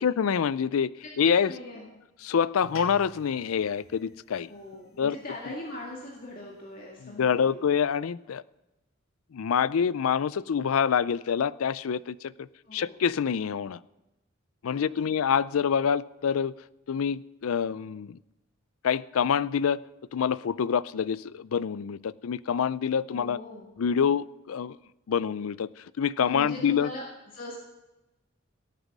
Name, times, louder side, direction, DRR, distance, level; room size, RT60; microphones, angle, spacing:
voice 1, 0.0-1.5 2.2-4.5 5.0-5.2 7.0-8.4 9.3-13.8 14.6-16.5 16.9-18.2 18.8-19.8 20.1-23.4 23.8-24.8 25.1-26.9, left 7 dB, 85° left, 19 dB, 0.4 m, -26 dB
voice 2, 1.0-1.9 4.5-7.6 12.6-13.0 14.7-15.1 23.1-23.7 26.2-27.0 27.3-27.6, left 2 dB, 40° left, -3 dB, 2.1 m, -41 dB
sound 1, 2.6-7.2, left 1 dB, 70° left, 2.5 m, -51 dB
17.0 x 9.2 x 6.1 m, 0.99 s
head